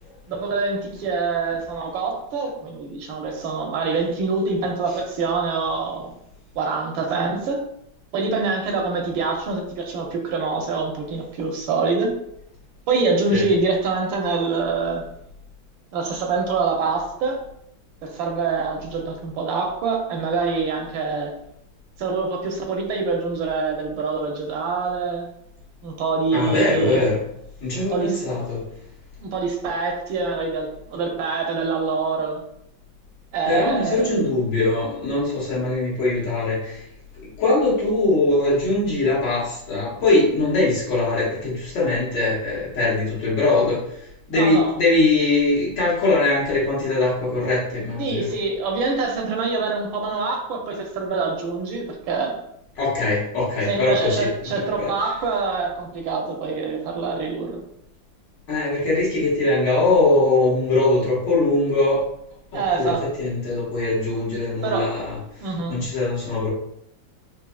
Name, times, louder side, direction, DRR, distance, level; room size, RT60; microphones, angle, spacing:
voice 1, 0.3-6.1 6.6-7.7 8.1-12.1 12.9-15.0 15.9-17.4 18.0-21.4 22.0-25.3 25.8-27.0 27.8-28.2 29.2-32.4 33.3-34.1 44.3-44.7 48.0-52.4 53.7-57.6 62.5-63.1 64.6-64.9 65.4-65.8, right 4 dB, 80° right, 2 dB, 1.4 m, -25 dB
voice 2, 26.3-27.2 27.6-28.6 33.5-36.8 37.4-43.8 44.3-48.3 52.8-54.3 54.8-54.9 58.5-62.0 62.5-65.2 65.7-66.5, left 2 dB, 65° left, -7 dB, 2.0 m, -21 dB
4.7 x 2.7 x 2.3 m, 0.74 s
omnidirectional pair, 2.2 m